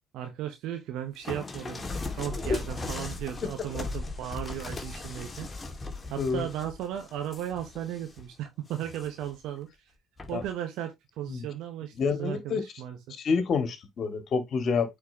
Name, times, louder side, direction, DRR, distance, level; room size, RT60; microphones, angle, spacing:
voice 1, 0.1-5.5 6.1-9.7 10.3-13.2, right 11 dB, 70° right, 1.1 m, -36 dB
sound 1, 1.2-8.2 8.7-9.3 10.2-10.5, left 3 dB, 25° left, 2.0 m, -38 dB
voice 2, 6.2-6.5 10.3-10.4 11.3-11.5 12.0-12.6 13.2-15.0, left 5 dB, 50° left, 2.1 m, -28 dB
8.7 x 4.6 x 2.9 m
hypercardioid pair, 60°, 0 cm